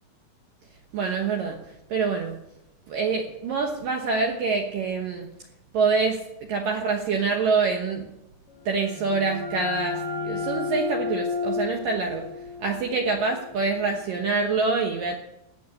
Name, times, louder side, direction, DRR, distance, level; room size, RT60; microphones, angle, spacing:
voice 1, 0.9-1.6 1.9-2.4 2.9-5.3 5.7-6.2 6.5-8.1 8.7-12.3 12.6-15.1, right 4 dB, 75° right, 2 dB, 2.0 m, -25 dB
sound 1, 8.6-14.1, left 4 dB, 30° left, 3.7 m, -33 dB
18.5 x 6.8 x 8.4 m, 0.83 s
omnidirectional pair, 5.8 m